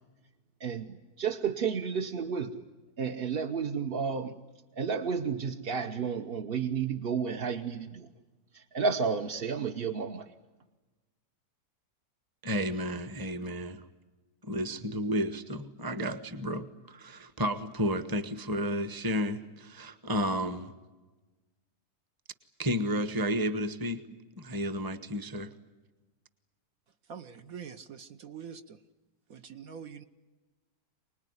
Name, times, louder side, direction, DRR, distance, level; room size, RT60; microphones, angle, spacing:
voice 1, 0.6-2.6 3.0-4.3 4.8-8.1 8.5-10.3, right 6 dB, 40° right, 4 dB, 0.9 m, -32 dB
voice 2, 12.4-13.8 14.4-20.7 22.6-24.0 24.4-25.5, equal, 15° right, 11 dB, 1.0 m, -32 dB
voice 3, 27.0-28.8 29.3-30.0, right 7 dB, 60° right, 8 dB, 1.3 m, -45 dB
25.0 x 20.0 x 9.7 m, 1.2 s
omnidirectional pair, 1.8 m